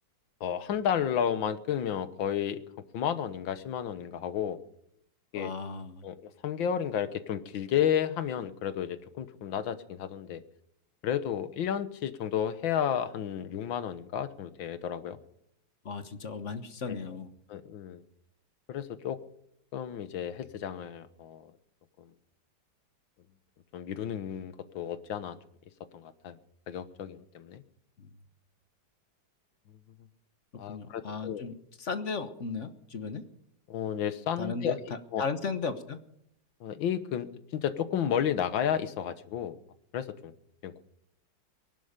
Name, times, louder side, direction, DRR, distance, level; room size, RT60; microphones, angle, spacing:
voice 1, 0.4-2.6 2.9-4.6 5.3-5.5 6.0-10.4 11.0-15.2 16.9-17.0 17.5-18.0 18.7-19.2 19.7-21.5 22.0-22.1 23.7-25.4 25.9-26.4 26.7-27.6 30.6-31.5 33.7-34.8 35.1-35.2 36.6-39.6 39.9-40.3 40.6-40.8, left 9 dB, 85° left, 12 dB, 1.8 m, -32 dB
voice 2, 5.3-6.0 15.8-17.3 28.0-28.1 30.7-33.2 34.4-36.0, left 5 dB, 45° left, 10 dB, 1.3 m, -36 dB
22.0 x 11.5 x 5.2 m, 0.72 s
omnidirectional pair, 2.1 m